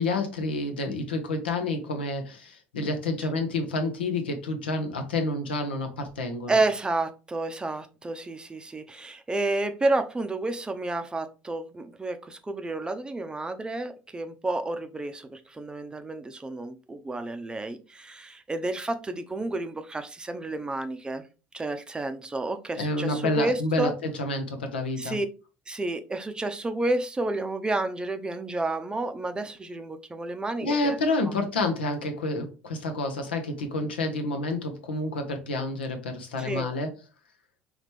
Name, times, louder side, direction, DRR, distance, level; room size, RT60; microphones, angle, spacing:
voice 1, 0.0-6.6 22.8-25.2 30.6-36.9, left 2 dB, 75° left, 0.8 m, -29 dB
voice 2, 6.5-21.2 21.5-23.9 25.0-25.3 25.7-31.0 36.4-36.7, right 2 dB, 15° right, 0.6 m, -30 dB
5.1 x 3.2 x 3.3 m
figure-of-eight pair, 60°, 6 cm